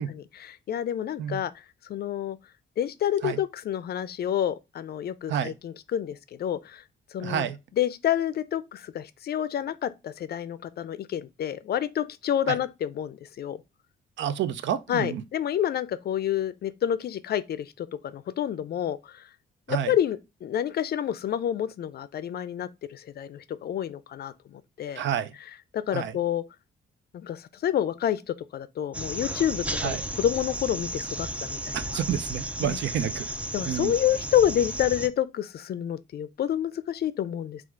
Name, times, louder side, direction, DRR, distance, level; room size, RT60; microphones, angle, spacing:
voice 1, 0.0-2.4 2.8-6.8 7.1-7.4 7.7-13.6 14.9-19.3 19.7-25.0 25.4-26.4 27.1-32.0 32.6-32.8 33.5-37.6, left 10 dB, 55° left, 0.4 m, -29 dB
voice 2, 7.2-7.6 12.5-12.6 14.2-15.2 19.7-19.9 25.0-25.3 25.9-26.1 29.8-30.0 31.7-33.3 33.6-33.9, right 9 dB, 70° right, 0.5 m, -29 dB
sound 1, 28.9-35.1, right 1 dB, 5° right, 0.4 m, -34 dB
4.5 x 2.4 x 3.6 m
cardioid pair, 90°, 20 cm